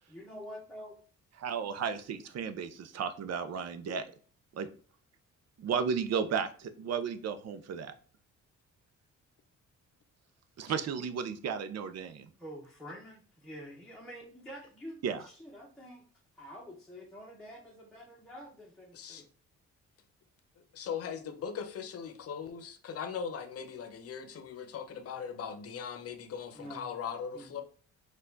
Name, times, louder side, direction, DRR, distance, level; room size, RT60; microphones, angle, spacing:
voice 1, 0.1-1.0 3.8-4.0 12.4-16.0 16.4-19.3 26.6-26.9 27.3-27.6, equal, ahead, 0.9 m, -47 dB
voice 2, 1.4-4.0 4.5-4.7 5.6-7.9 10.6-12.3 15.0-15.2, right 6 dB, 60° right, 0.6 m, -34 dB
voice 3, 18.9-19.2 20.7-27.6, left 7 dB, 50° left, 0.7 m, -39 dB
4.5 x 2.4 x 3.8 m
cardioid pair, 90°, 30 cm